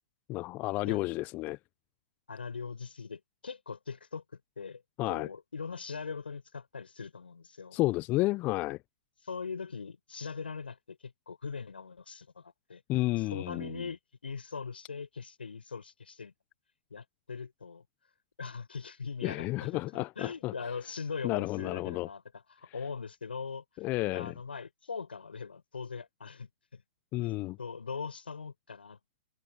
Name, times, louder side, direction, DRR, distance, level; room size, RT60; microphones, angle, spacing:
voice 1, 0.3-1.6 5.0-5.3 7.7-8.8 12.9-13.8 19.2-20.5 21.2-22.1 23.8-24.3 27.1-27.6, left 19 dB, 30° left, 0.8 m, -31 dB
voice 2, 2.3-4.2 4.6-7.8 9.2-12.8 13.2-16.3 16.9-17.8 18.4-23.6 24.1-26.8 27.2-29.0, left 5 dB, 75° left, 5.4 m, -41 dB
figure-of-eight pair, 115°, 6 cm